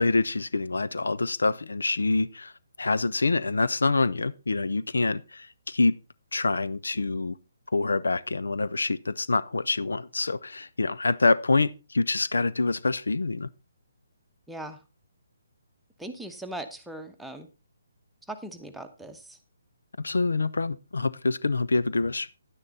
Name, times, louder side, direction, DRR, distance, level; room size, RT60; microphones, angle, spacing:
voice 1, 0.0-2.5 2.8-6.0 6.3-7.4 7.7-13.5 20.0-22.3, left 3 dB, 75° left, 0.5 m, -26 dB
voice 2, 14.5-14.8 16.0-17.5 18.3-19.4, right 1 dB, ahead, 1.0 m, -39 dB
10.5 x 9.7 x 4.0 m
figure-of-eight pair, 140°, 0 cm